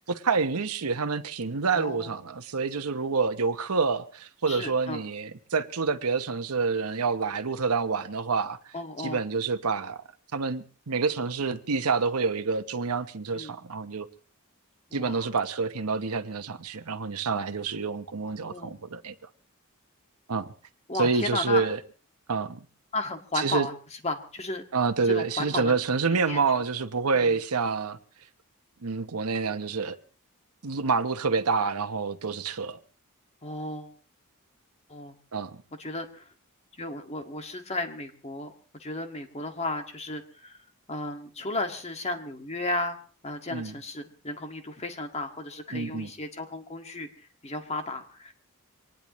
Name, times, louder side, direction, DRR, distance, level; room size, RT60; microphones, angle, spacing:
voice 1, 0.0-10.0 10.3-14.1 14.9-19.1 20.3-20.5 20.9-21.8 22.3-22.6 23.3-23.7 24.7-28.0 28.8-30.0 30.6-32.8 35.3-35.5 43.5-43.7 45.7-46.1, right 4 dB, 90° right, 1.0 m, -28 dB
voice 2, 1.7-2.1 4.5-5.0 8.7-9.2 13.3-13.5 14.9-15.3 18.4-18.8 20.9-21.6 22.9-23.7 24.0-24.6 25.1-25.8 26.0-26.4 27.1-27.4 33.4-33.9 34.9-35.1 35.8-36.2 36.8-38.5 38.8-40.6 40.9-43.0 43.2-47.1 47.4-48.3, left 2 dB, 30° left, 1.9 m, -34 dB
24.5 x 19.0 x 3.1 m
head